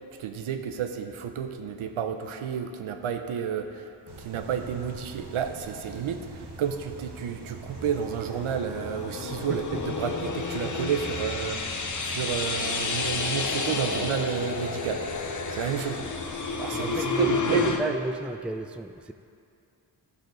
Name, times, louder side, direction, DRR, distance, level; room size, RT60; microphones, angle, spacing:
voice 1, 0.2-15.1 15.5-16.0 16.6-18.0, right 7 dB, 75° right, 7 dB, 0.8 m, -31 dB
sound 1, 4.1-17.8, right 3 dB, 55° right, 1.3 m, -43 dB
sound 2, 7.7-17.8, left 4 dB, 35° left, 0.9 m, -31 dB
voice 2, 9.5-9.8 16.7-19.1, right 2 dB, ahead, 8 dB, 0.4 m, -33 dB
11.5 x 6.8 x 3.9 m, 2.4 s
cardioid pair, 45°, 49 cm